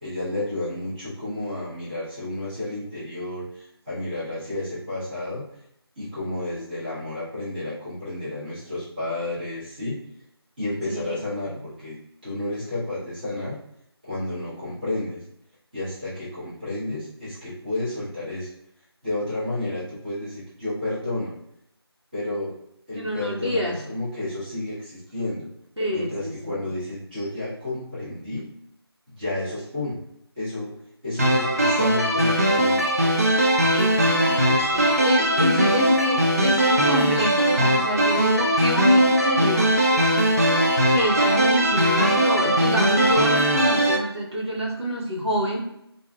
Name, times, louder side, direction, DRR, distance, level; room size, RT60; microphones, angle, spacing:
voice 1, 0.0-5.4 6.0-10.0 10.6-11.9 12.2-13.6 14.0-15.2 15.7-18.5 19.0-21.3 22.1-22.5 22.9-25.5 25.9-28.5 29.2-30.0 30.3-30.7 31.0-32.8, left 2 dB, 20° right, -14 dB, 1.3 m, -31 dB
voice 2, 22.9-23.8 25.8-26.6 33.7-39.8 40.9-45.7, equal, 90° right, -5 dB, 1.1 m, -26 dB
sound 1, 31.2-44.0, right 1 dB, 35° right, 0.4 m, -20 dB
3.0 x 2.5 x 2.3 m, 0.78 s
figure-of-eight pair, 165°, 14 cm